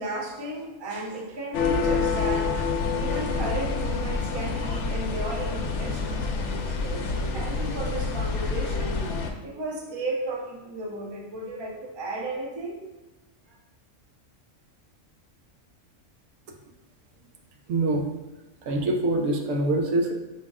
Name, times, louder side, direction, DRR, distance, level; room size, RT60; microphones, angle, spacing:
voice 1, 0.0-8.9 9.4-12.8 13.5-13.6, right 2 dB, 30° right, -1 dB, 0.5 m, -34 dB
sound 1, 1.5-9.3, left 4 dB, 70° left, 0.8 m, -27 dB
voice 2, 17.7-18.1 18.6-20.1, right 2 dB, 85° right, 2 dB, 1.1 m, -24 dB
5.8 x 2.1 x 3.5 m, 1.1 s
omnidirectional pair, 1.3 m